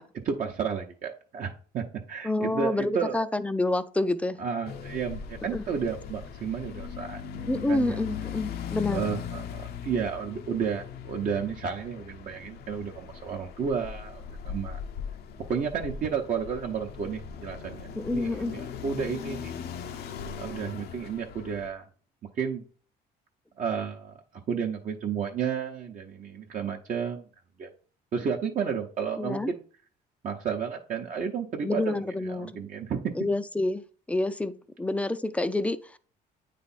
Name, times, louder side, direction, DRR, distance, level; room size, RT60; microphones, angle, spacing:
voice 1, 0.1-3.2 4.4-7.2 7.7-8.0 8.9-14.8 15.5-19.5 20.4-21.9 22.4-22.6 23.6-24.2 24.5-27.2 27.6-27.7 28.1-29.6 30.2-32.0 32.3-33.1, right 6 dB, 50° right, 0.8 m, -32 dB
voice 2, 2.2-4.4 5.5-5.6 7.5-9.0 18.0-18.5 29.2-29.5 31.6-32.6 33.1-36.0, left 2 dB, 10° left, 0.4 m, -28 dB
sound 1, 4.6-21.7, left 7 dB, 70° left, 0.7 m, -39 dB
8.8 x 3.3 x 4.1 m
cardioid pair, 110°, 17 cm